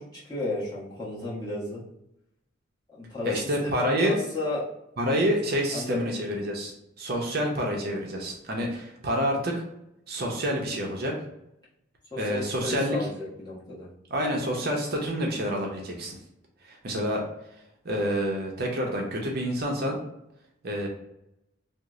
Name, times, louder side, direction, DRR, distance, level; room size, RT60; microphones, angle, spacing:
voice 1, 0.0-1.8 2.9-4.6 5.7-6.1 12.1-13.9, left 2 dB, 20° left, -9 dB, 1.1 m, -33 dB
voice 2, 3.2-4.2 5.0-6.7 7.0-9.6 10.1-11.1 12.2-13.1 14.1-16.2 16.6-17.2 17.8-20.0 20.6-20.9, equal, 50° right, 0 dB, 0.6 m, -28 dB
3.0 x 2.1 x 3.6 m, 0.82 s
head